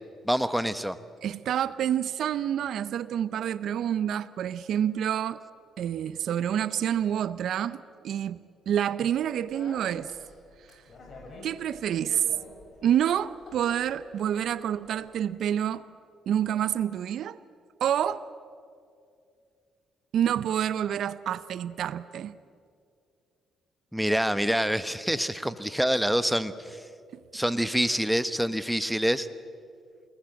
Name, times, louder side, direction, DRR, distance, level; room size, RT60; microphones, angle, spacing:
voice 1, 0.2-1.0 23.9-26.8 27.3-29.3, equal, ahead, 12 dB, 1.0 m, -26 dB
voice 2, 1.2-5.4 5.8-8.4 8.7-10.1 11.4-12.2 12.8-15.8 16.3-17.4 17.8-18.2 20.1-22.3, right 10 dB, 70° right, 16 dB, 0.6 m, -28 dB
Speech, 9.1-15.2, left 2 dB, 45° left, 7.0 m, -49 dB
27.0 x 19.5 x 7.8 m, 2.4 s
cardioid pair, 90°, 0 cm